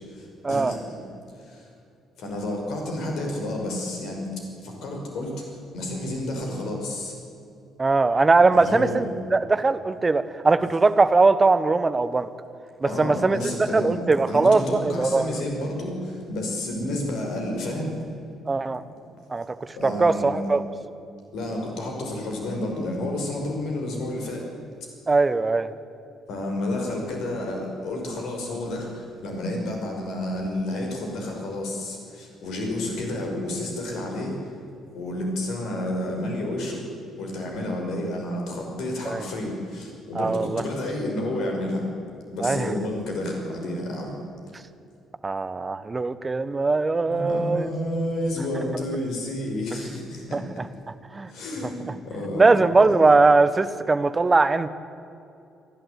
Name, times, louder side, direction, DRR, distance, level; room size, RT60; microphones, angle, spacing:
voice 1, 0.1-1.1 1.4-1.7 2.2-4.3 4.6-5.4 5.7-7.1 8.5-9.1 12.8-18.0 19.8-20.5 21.3-24.5 26.3-34.4 34.9-36.9 37.2-41.9 42.3-44.2 47.1-50.6 51.3-52.9, left 1 dB, 60° left, 1 dB, 5.5 m, -30 dB
voice 2, 7.8-12.3 12.8-13.4 13.7-15.7 18.5-18.8 19.3-19.5 19.8-20.6 25.1-25.7 39.1-39.2 40.1-40.6 42.4-42.7 45.2-47.7 50.3-50.4 51.1-51.3 52.3-54.7, right 3 dB, 30° right, 13 dB, 1.2 m, -20 dB
29.0 x 12.0 x 8.3 m, 2.6 s
figure-of-eight pair, 45°, 0 cm